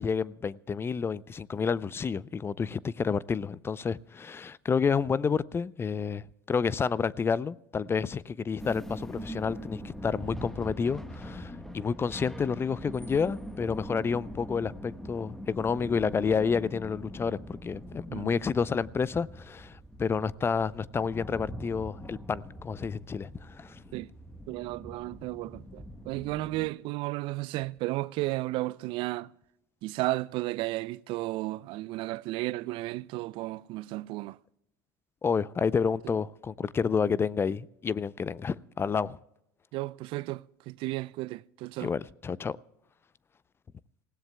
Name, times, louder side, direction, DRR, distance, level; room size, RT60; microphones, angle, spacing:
voice 1, 0.0-23.8 35.2-39.2 41.8-42.6, left 5 dB, 20° left, 0.5 m, -30 dB
sound 1, 8.6-26.7, equal, 5° left, 1.3 m, -43 dB
voice 2, 24.5-29.3 29.8-34.4 39.7-41.9, right 19 dB, 55° right, 0.4 m, -33 dB
27.5 x 16.5 x 2.2 m
hypercardioid pair, 80°, 11 cm